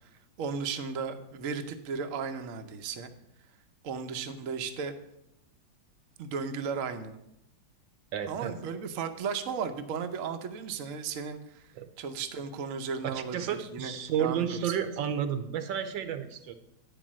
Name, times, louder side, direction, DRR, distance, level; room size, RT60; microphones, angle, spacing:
voice 1, 0.4-3.1 3.8-4.9 6.2-7.2 8.3-11.6 12.0-13.9 14.2-14.7, right 6 dB, 60° right, 7 dB, 0.9 m, -35 dB
voice 2, 8.1-8.5 11.8-11.9 13.1-16.6, right 9 dB, 75° right, 10 dB, 1.5 m, -31 dB
9.3 x 5.2 x 7.4 m, 0.82 s
omnidirectional pair, 2.1 m